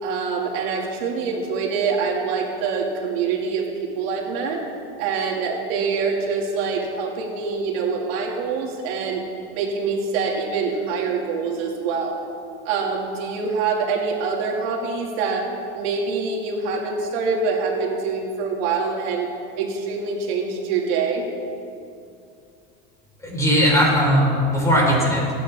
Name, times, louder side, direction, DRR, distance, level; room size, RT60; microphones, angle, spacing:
voice 1, 0.0-4.6 5.0-9.2 9.5-12.2 12.6-15.5 15.7-19.3 19.6-21.3, right 5 dB, 80° right, 0 dB, 2.6 m, -25 dB
voice 2, 23.2-25.3, equal, 10° left, -4 dB, 4.5 m, -18 dB
29.5 x 10.0 x 3.7 m, 2.5 s
cardioid pair, 150°, 30 cm